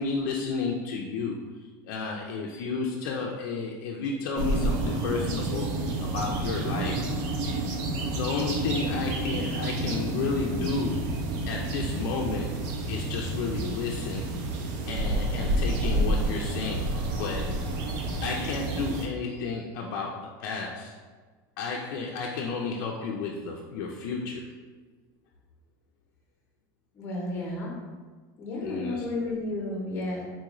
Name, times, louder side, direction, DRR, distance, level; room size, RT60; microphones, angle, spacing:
voice 1, 0.0-7.0 8.1-11.1 11.5-12.6 12.8-14.3 14.9-16.9 17.2-17.6 18.2-21.0 21.6-24.5 28.6-29.1, left 4 dB, 65° left, -2 dB, 0.4 m, -32 dB
sound 1, 4.4-19.1, right 2 dB, 55° right, 0.5 m, -29 dB
voice 2, 26.9-27.7 28.4-30.3, left 2 dB, 25° left, -2 dB, 0.7 m, -32 dB
3.9 x 2.4 x 2.9 m, 1.4 s
cardioid pair, 175°, 11 cm